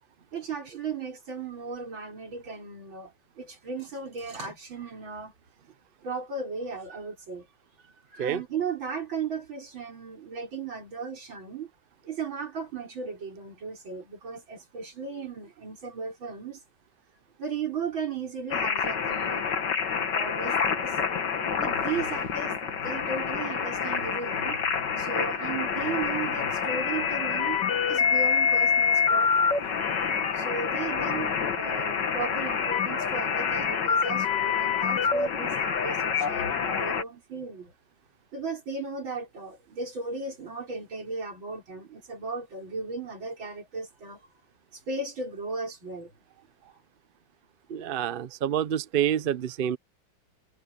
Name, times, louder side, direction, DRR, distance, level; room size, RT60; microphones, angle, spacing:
voice 1, 0.3-5.3 6.0-7.5 8.1-11.7 12.0-16.6 17.4-19.6 20.0-21.0 21.6-24.6 25.0-29.6 30.4-37.7 38.3-44.2 44.7-46.1 46.6-46.7, right 4 dB, 90° right, 5.6 m, -36 dB
sound 1, 18.5-37.0, left 6 dB, 65° left, 2.2 m, -27 dB
voice 2, 47.7-49.8, right 10 dB, 60° right, 0.5 m, -27 dB
omnidirectional pair, 2.1 m